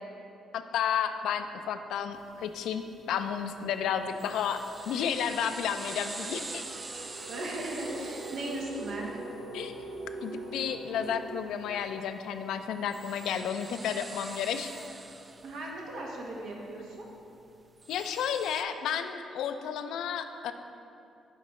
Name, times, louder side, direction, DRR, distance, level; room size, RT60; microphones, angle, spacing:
voice 1, 0.5-6.6 9.5-9.7 10.2-14.7 17.9-20.5, left 8 dB, 80° left, 8 dB, 0.3 m, -32 dB
sound 1, 1.3-1.5 1.9-13.4, right 2 dB, 60° right, 0.7 m, -45 dB
sound 2, 2.1-18.6, right 3 dB, 30° right, 0.3 m, -47 dB
voice 2, 7.3-9.1 15.4-17.1, right 1 dB, 80° right, -2 dB, 1.2 m, -37 dB
9.8 x 3.9 x 3.1 m, 2.6 s
cardioid pair, 90°, 0 cm